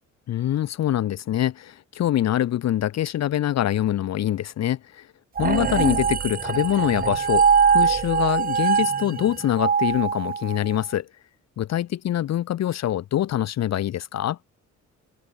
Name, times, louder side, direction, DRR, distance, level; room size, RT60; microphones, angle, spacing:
voice 1, 0.3-5.1 5.4-11.1 11.6-14.4, left 12 dB, 60° left, 0.9 m, -24 dB
sound 1, 5.4-10.8, right 6 dB, 30° right, 0.8 m, -22 dB
cardioid pair, 90°, 30 cm